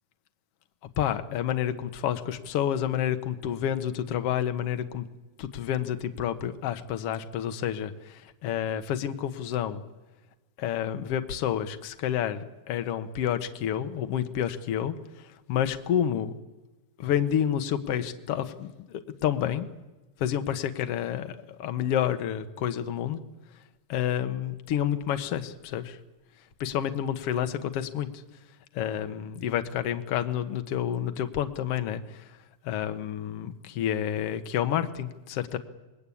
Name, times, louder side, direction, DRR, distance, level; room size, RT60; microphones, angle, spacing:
voice 1, 1.0-5.1 5.4-9.8 10.6-16.3 17.0-19.7 20.2-23.2 23.9-26.0 26.6-28.1 28.7-32.4 32.6-35.6, left 10 dB, 80° left, 8 dB, 1.3 m, -29 dB
27.0 x 20.5 x 8.5 m, 1.1 s
omnidirectional pair, 4.6 m